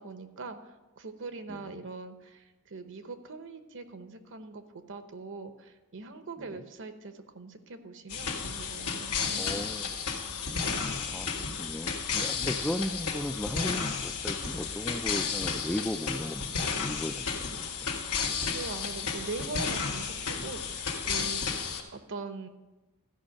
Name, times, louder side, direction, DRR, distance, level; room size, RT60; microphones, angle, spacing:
voice 1, 0.0-4.6 4.9-9.9 18.5-21.6 21.9-22.5, right 3 dB, 60° right, 9 dB, 0.9 m, -42 dB
sound 1, 8.1-21.8, left 5 dB, 85° left, 1.6 m, -32 dB
voice 2, 9.4-9.9 11.1-11.3 11.6-17.6, left 1 dB, 5° left, 8 dB, 0.3 m, -36 dB
14.0 x 5.3 x 6.4 m, 1.1 s
head